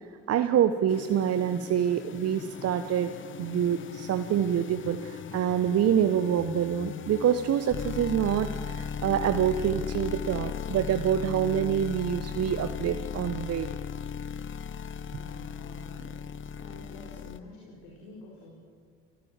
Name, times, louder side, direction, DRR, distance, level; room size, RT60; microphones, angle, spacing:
voice 1, 0.3-3.1 3.4-13.7, right 9 dB, 50° right, 8 dB, 1.1 m, -26 dB
sound 1, 0.9-17.4, left 7 dB, 40° left, 0.9 m, -37 dB
voice 2, 15.1-16.2 16.5-18.5, left 3 dB, 75° left, -1 dB, 4.5 m, -48 dB
29.0 x 16.0 x 7.5 m, 2.2 s
hypercardioid pair, 65°, 32 cm